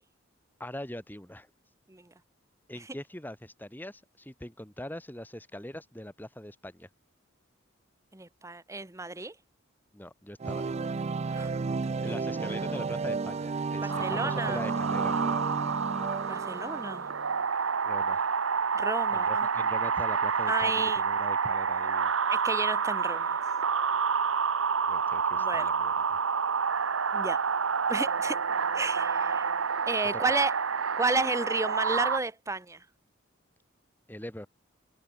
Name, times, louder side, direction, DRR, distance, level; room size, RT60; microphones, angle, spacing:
voice 1, 0.6-1.5 2.7-6.9 9.9-10.8 12.0-15.2 17.8-18.3 19.1-22.1 24.9-26.2 30.1-30.2 34.1-34.5, left 1 dB, 10° left, 2.7 m, -42 dB
voice 2, 8.1-9.3 11.3-11.5 11.8-12.2 13.8-14.6 16.3-17.1 18.7-19.5 20.5-21.0 22.3-23.4 25.4-25.7 27.1-27.4 27.9-28.4 28.7-29.5 29.9-30.5 31.0-32.8, right 3 dB, 15° right, 1.1 m, -32 dB
sound 1, 10.4-17.3, right 4 dB, 30° right, 0.4 m, -33 dB
sound 2, 13.9-32.2, right 6 dB, 80° right, 1.0 m, -28 dB
head